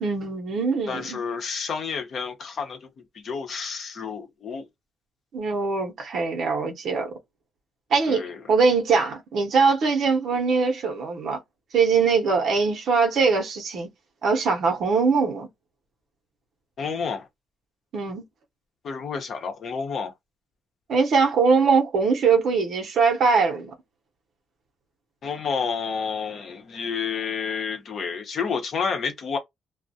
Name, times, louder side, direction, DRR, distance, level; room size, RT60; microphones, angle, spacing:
voice 1, 0.0-1.2 5.3-7.1 7.9-11.4 11.7-13.9 14.2-15.5 17.9-18.2 20.9-23.7, right 5 dB, 65° right, 0.6 m, -22 dB
voice 2, 0.9-2.9 3.1-4.6 8.1-8.4 16.8-17.3 18.8-20.1 25.2-29.4, left 6 dB, 60° left, 0.7 m, -30 dB
2.3 x 2.0 x 2.6 m
cardioid pair, 90°, 0 cm